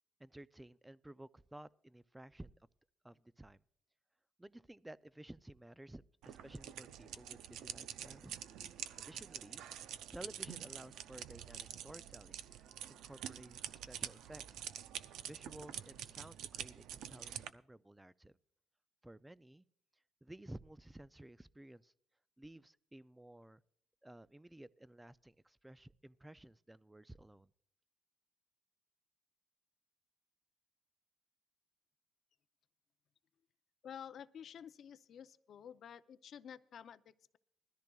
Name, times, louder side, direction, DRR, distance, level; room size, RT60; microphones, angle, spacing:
voice 1, 0.2-2.5 3.0-3.6 4.4-8.3 9.0-9.6 10.1-12.4 12.9-14.6 15.2-18.4 19.0-19.6 20.2-21.9 22.4-23.6 24.0-27.5, right 1 dB, 10° right, 0.4 m, -54 dB
sound 1, 6.2-17.5, right 10 dB, 85° right, 0.4 m, -47 dB
voice 2, 33.8-37.4, left 8 dB, 60° left, 0.5 m, -51 dB
20.5 x 13.5 x 2.3 m
cardioid pair, 90°, 0 cm